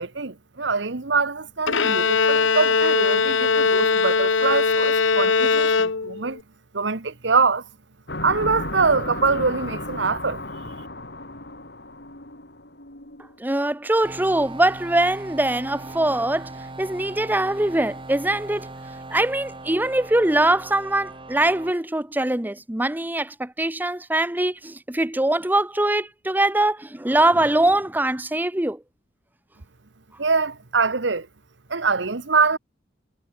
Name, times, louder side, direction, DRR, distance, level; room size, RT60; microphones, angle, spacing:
voice 1, 0.0-6.4 6.7-7.6 8.2-10.4 30.2-31.3 31.7-32.6, right 4 dB, 65° right, 1.2 m, -24 dB
Bowed string instrument, 1.7-6.4, left 5 dB, 75° left, 1.0 m, -20 dB
sound 1, 8.1-13.4, left 2 dB, 60° left, 8.0 m, -34 dB
voice 2, 13.4-16.5 16.8-18.7 19.1-28.8, right 1 dB, 10° right, 0.8 m, -22 dB
sound 2, 14.0-21.7, right 2 dB, 25° right, 2.4 m, -39 dB
head